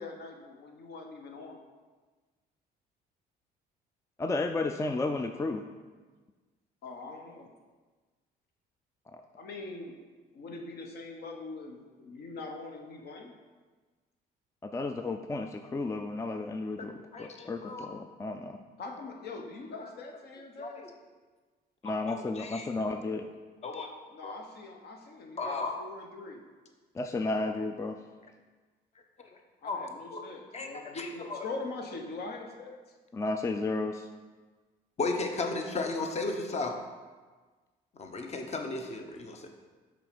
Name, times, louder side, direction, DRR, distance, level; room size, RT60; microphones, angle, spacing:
voice 1, 0.0-1.6 6.8-7.5 9.4-9.9 10.3-13.3 18.8-20.8 24.1-26.4 29.6-32.8 35.3-35.4, left 3 dB, 60° left, 2 dB, 1.1 m, -42 dB
voice 2, 4.2-5.6 9.1-9.2 14.6-18.6 21.8-23.3 26.9-28.0 33.1-34.1, left 3 dB, 15° left, 6 dB, 0.4 m, -33 dB
voice 3, 17.1-17.9 19.7-19.9 20.6-20.9 21.8-22.7 23.6-23.9 24.2-24.3 25.4-25.7 29.2-29.3 29.6-29.8 30.1-30.2 30.5-31.5 35.0-36.8 38.0-39.5, left 3 dB, 35° left, 4 dB, 0.9 m, -35 dB
6.0 x 4.2 x 5.1 m, 1.4 s
supercardioid pair, 85°, 18 cm